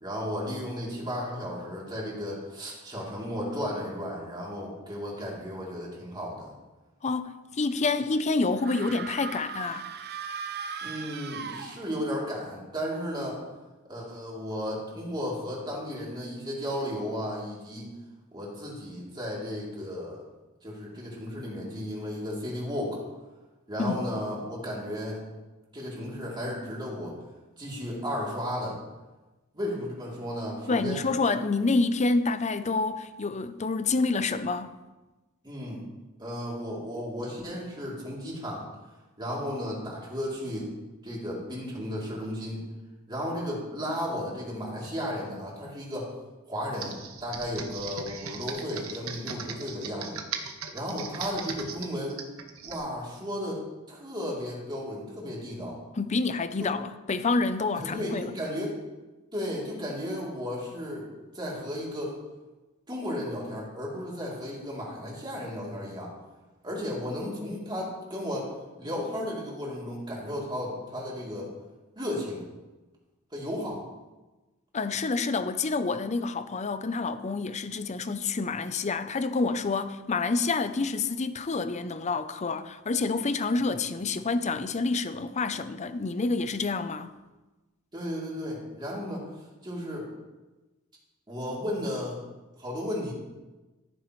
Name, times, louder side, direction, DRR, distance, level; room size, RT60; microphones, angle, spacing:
voice 1, 0.0-6.5 10.8-13.4 13.9-17.9 18.3-20.2 20.6-23.0 23.7-25.2 25.7-27.2 27.6-28.8 29.5-31.0 35.4-35.8 36.2-38.7 39.2-40.7 41.0-42.6 43.1-46.1 46.4-50.2 50.7-52.2 52.6-53.6 53.9-55.8 56.6-56.7 57.8-58.8 59.3-61.1 61.3-62.2 62.9-66.1 66.6-68.5 68.8-71.5 71.9-72.5 73.3-73.8 83.6-83.8 87.9-90.1 91.3-92.2 92.6-93.1, equal, 20° right, 3.1 m, -34 dB
voice 2, 7.0-9.9 23.8-24.1 30.7-34.8 56.0-58.3 74.7-87.1, left 3 dB, 35° left, 0.6 m, -28 dB
sound 1, 8.6-12.2, right 6 dB, 50° right, 0.7 m, -38 dB
Computer keyboard, 46.7-52.8, right 6 dB, 90° right, 1.2 m, -38 dB
14.5 x 9.1 x 3.2 m
head